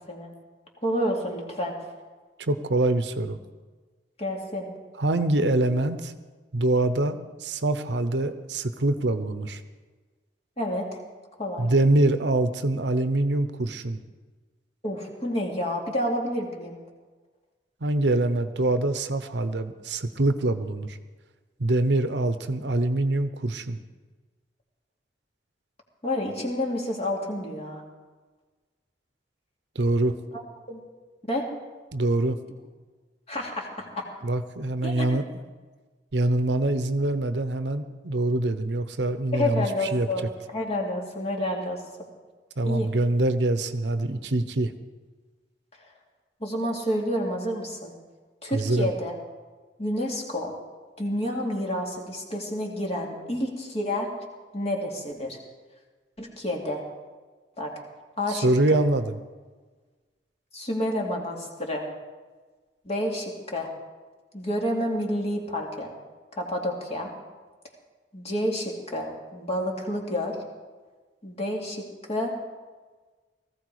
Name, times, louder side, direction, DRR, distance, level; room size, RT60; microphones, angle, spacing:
voice 1, 0.8-1.8 4.2-4.7 10.6-11.0 11.4-11.7 14.8-16.8 26.0-27.8 30.3-30.4 30.7-30.8 31.3-31.5 33.3-34.0 34.8-35.1 39.3-42.1 42.6-42.9 46.4-47.9 48.4-49.1 49.8-50.5 51.0-54.1 54.5-55.4 56.2-56.8 57.6-57.7 58.2-58.5 60.5-61.8 62.8-63.7 64.3-65.9 66.3-67.1 68.1-70.4 71.2-72.3, left 1 dB, 35° left, 0 dB, 2.6 m, -29 dB
voice 2, 2.4-3.4 5.0-6.1 6.5-9.6 11.6-14.0 17.8-21.0 21.6-23.8 29.7-30.2 31.9-32.4 34.2-35.2 36.1-40.1 42.6-44.7 48.5-48.9 58.3-59.2, right 2 dB, 75° right, 10 dB, 0.9 m, -24 dB
18.0 x 15.0 x 4.9 m, 1.4 s
head